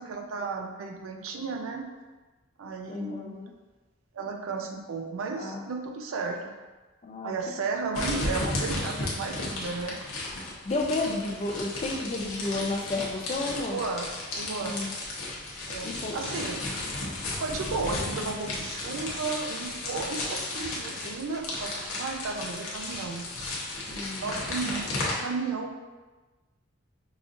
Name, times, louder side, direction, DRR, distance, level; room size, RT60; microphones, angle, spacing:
voice 1, 0.0-1.9 2.6-3.4 4.1-6.5 7.2-10.0 13.6-14.8 15.7-16.6 17.4-23.3 24.2-24.8 25.2-25.7, right 4 dB, 85° right, 4 dB, 0.4 m, -34 dB
voice 2, 2.9-3.5 5.4-5.6 7.0-7.3 10.6-13.8 14.6-14.9 15.8-16.2 23.9-24.6, left 2 dB, 30° left, 1 dB, 0.4 m, -32 dB
sound 1, 7.9-25.1, left 2 dB, 85° left, 0.8 m, -34 dB
4.8 x 2.5 x 2.5 m, 1.2 s
head